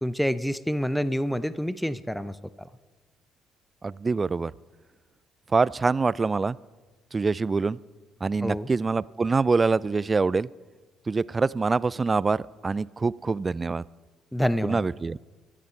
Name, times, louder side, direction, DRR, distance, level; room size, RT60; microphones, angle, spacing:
voice 1, 0.0-2.7 8.4-8.7 14.3-14.8, equal, 5° left, 15 dB, 0.7 m, -27 dB
voice 2, 3.8-4.5 5.5-6.6 7.1-7.8 8.2-10.5 11.1-13.8 14.6-15.2, right 4 dB, 30° right, 22 dB, 0.4 m, -25 dB
24.0 x 10.0 x 4.5 m, 1.3 s
hypercardioid pair, 50°, 0 cm